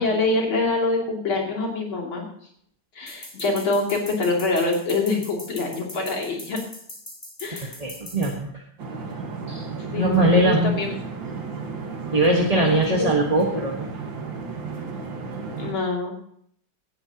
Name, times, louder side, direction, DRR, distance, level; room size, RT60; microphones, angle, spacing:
voice 1, 0.0-2.2 3.0-6.6 7.4-7.8 9.9-10.9 12.6-13.1 15.6-16.1, left 3 dB, 75° left, -1 dB, 3.6 m, -25 dB
sound 1, 3.1-8.3, left 1 dB, 20° left, 4.0 m, -40 dB
voice 2, 7.8-8.6 9.5-9.6 9.9-10.8 12.1-13.8, right 1 dB, 20° right, -1 dB, 1.3 m, -21 dB
sound 2, 8.8-15.7, right 4 dB, 65° right, 2.4 m, -33 dB
18.0 x 12.5 x 2.9 m, 0.64 s
omnidirectional pair, 2.3 m